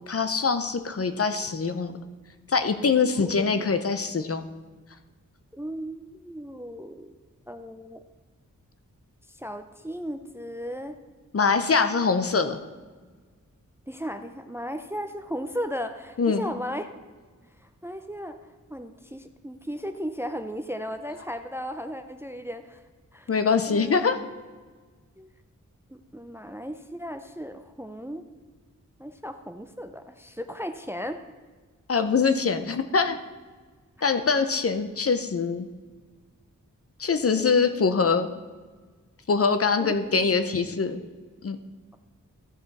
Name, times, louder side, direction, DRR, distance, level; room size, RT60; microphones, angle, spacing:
voice 1, 0.1-1.9 2.5-4.5 11.3-12.6 16.2-16.4 23.3-24.2 31.9-33.2 34.0-35.7 37.0-38.3 39.3-41.0 41.4-41.6, left 5 dB, 45° left, 8 dB, 0.6 m, -23 dB
voice 2, 3.0-3.5 5.5-7.1 7.5-8.0 9.4-11.0 13.9-16.9 17.8-18.4 18.7-22.8 23.1-23.3 23.7-24.0 25.2-25.3 25.9-28.2 29.0-31.2 37.4-37.8 39.8-40.4 40.7-40.8, equal, 10° right, 8 dB, 0.5 m, -36 dB
14.0 x 5.6 x 4.1 m, 1.4 s
wide cardioid pair, 105°, 32 cm